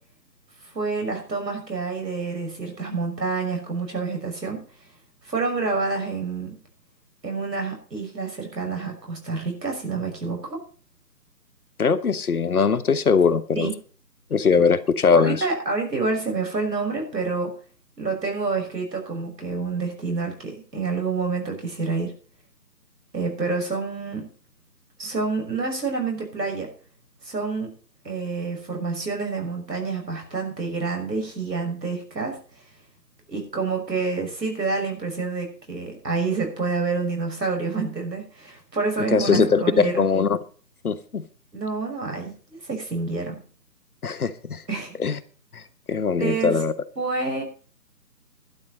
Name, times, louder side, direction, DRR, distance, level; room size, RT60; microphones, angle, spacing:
voice 1, 0.7-4.6 5.2-6.5 7.2-10.6 13.5-13.7 14.6-14.7 15.1-17.5 18.0-22.1 23.1-24.3 25.0-26.7 27.2-27.7 28.0-32.4 33.3-40.1 41.5-43.4 44.7-44.9 46.2-46.6 47.0-47.4, right 4 dB, 80° right, 2 dB, 6.3 m, -28 dB
voice 2, 11.8-13.7 14.3-15.5 39.1-40.4 40.8-41.2 44.0-44.6 45.0-45.2 45.5-45.6 45.9-46.7, left 5 dB, 60° left, 13 dB, 1.3 m, -21 dB
12.0 x 11.0 x 5.4 m, 0.40 s
figure-of-eight pair, 165°, 50 cm